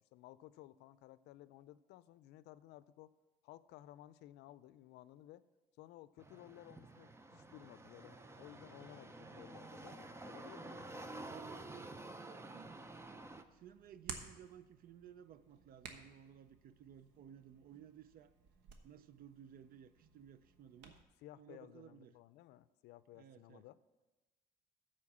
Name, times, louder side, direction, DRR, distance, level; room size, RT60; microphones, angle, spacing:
voice 1, 0.1-3.1 3.4-5.4 5.8-11.1 20.9-23.8, left 14 dB, 85° left, 16 dB, 0.4 m, -57 dB
sound 1, 6.2-13.4, right 2 dB, 15° right, 0.6 m, -51 dB
voice 2, 11.3-12.8 13.5-18.3 18.8-21.0 21.4-22.2 23.1-23.7, right 9 dB, 60° right, 14 dB, 0.6 m, -57 dB
Hands, 12.6-21.0, right 6 dB, 90° right, 1.1 m, -55 dB
13.5 x 4.4 x 7.3 m, 1.1 s
cardioid pair, 110°, 17 cm